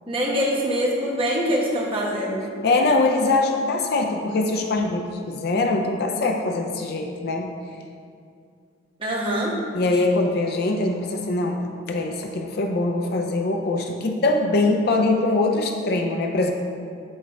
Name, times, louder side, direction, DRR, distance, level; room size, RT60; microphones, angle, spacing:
voice 1, 0.1-2.4 9.0-9.5, equal, 30° right, -3 dB, 1.1 m, -24 dB
voice 2, 2.6-7.5 9.7-16.5, left 2 dB, 55° left, 3 dB, 0.5 m, -22 dB
8.7 x 3.5 x 4.7 m, 2.3 s
head